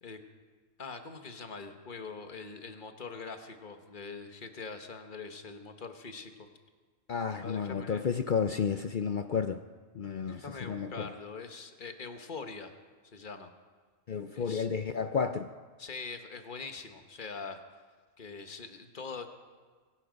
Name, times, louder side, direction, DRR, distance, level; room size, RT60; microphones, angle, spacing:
voice 1, 0.8-6.5 7.4-8.0 10.3-12.7 13.1-13.5 14.3-14.7 15.8-17.6 18.2-19.3, left 4 dB, 40° left, 7 dB, 1.3 m, -43 dB
voice 2, 7.1-9.6 9.9-11.1 14.1-15.5, left 6 dB, 55° left, 9 dB, 0.5 m, -32 dB
23.5 x 11.0 x 5.2 m, 1.5 s
omnidirectional pair, 1.4 m